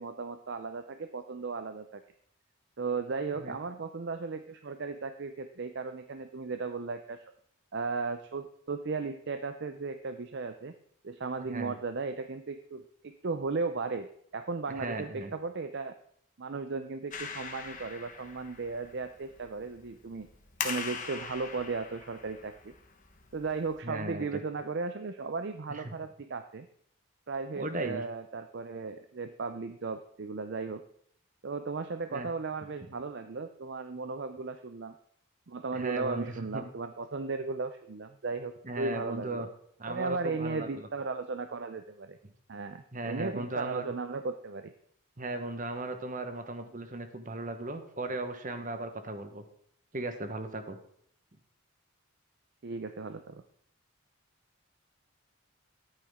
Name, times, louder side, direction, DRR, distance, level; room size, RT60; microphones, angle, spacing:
voice 1, 0.0-2.0 2.8-7.2 7.7-10.7 11.0-15.9 16.4-20.3 20.6-22.7 23.3-26.7 27.3-30.8 31.4-34.9 35.5-39.5 39.9-42.2 42.5-44.7 52.6-53.4, right 4 dB, 50° right, 9 dB, 0.5 m, -36 dB
voice 2, 11.4-11.7 14.8-15.3 23.8-24.4 25.7-25.8 27.6-28.0 32.1-32.3 35.7-36.6 38.6-39.5 39.8-40.9 42.9-43.9 45.2-49.4 49.9-50.8, right 2 dB, 35° right, 7 dB, 1.1 m, -37 dB
Clapping, 17.1-23.8, left 6 dB, 35° left, 1.2 m, -42 dB
13.5 x 8.8 x 3.6 m, 0.65 s
head